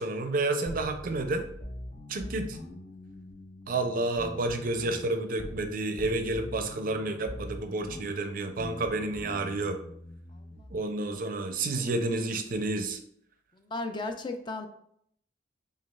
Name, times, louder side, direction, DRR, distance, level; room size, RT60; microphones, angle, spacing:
voice 1, 0.0-1.5 2.1-2.6 3.7-9.8 10.7-13.0, right 2 dB, 50° right, 6 dB, 0.4 m, -30 dB
sound 1, 0.7-5.7 6.0-10.8, left 1 dB, 40° left, 0.7 m, -43 dB
voice 2, 10.3-10.7 13.5-14.7, left 2 dB, 25° left, 6 dB, 0.3 m, -36 dB
6.0 x 2.4 x 2.3 m, 0.68 s
head